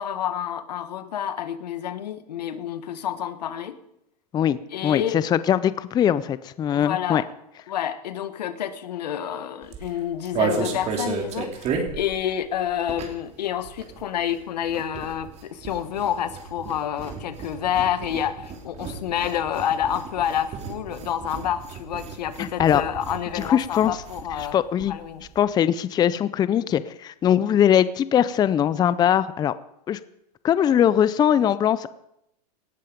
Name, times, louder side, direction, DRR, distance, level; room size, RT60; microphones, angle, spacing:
voice 1, 0.0-3.7 4.7-5.2 6.7-7.3 7.7-24.6 24.9-25.2, left 10 dB, 90° left, 12 dB, 1.6 m, -28 dB
voice 2, 4.3-7.2 22.4-22.8 23.3-24.0 24.5-24.9 25.4-29.5 29.9-30.0 30.4-31.9, left 9 dB, 20° left, 16 dB, 0.5 m, -21 dB
sound 1, 9.6-13.4 13.6-24.5 24.8-24.9 25.1-25.4, right 5 dB, 30° right, 3.0 m, -33 dB
18.0 x 13.5 x 5.2 m, 0.80 s
supercardioid pair, 135°, 21 cm